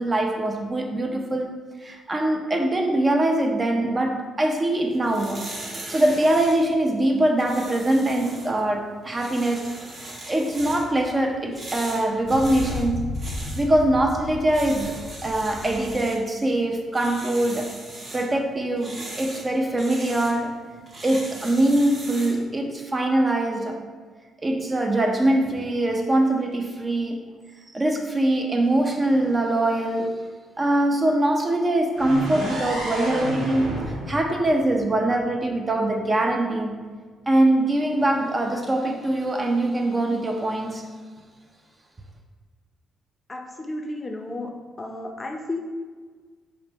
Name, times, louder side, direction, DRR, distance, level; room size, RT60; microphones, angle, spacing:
voice 1, 0.0-1.5 1.8-5.5 5.9-9.7 10.3-13.1 13.5-17.7 18.1-20.6 21.0-23.8 24.4-27.2 27.7-30.1 30.6-33.7 34.1-36.7 37.3-40.8, right 1 dB, 25° right, 2 dB, 0.5 m, -23 dB
sound 1, 4.8-22.4, right 1 dB, 45° right, 1.1 m, -40 dB
sound 2, 11.0-11.1 12.2-16.0, left 2 dB, 70° left, 0.5 m, -34 dB
sound 3, 31.9-35.8, right 1 dB, 80° right, 1.2 m, -31 dB
voice 2, 43.3-44.5 44.8-45.6, left 2 dB, 25° left, 2 dB, 0.5 m, -32 dB
5.0 x 2.1 x 4.2 m, 1.5 s
cardioid pair, 90°, 0 cm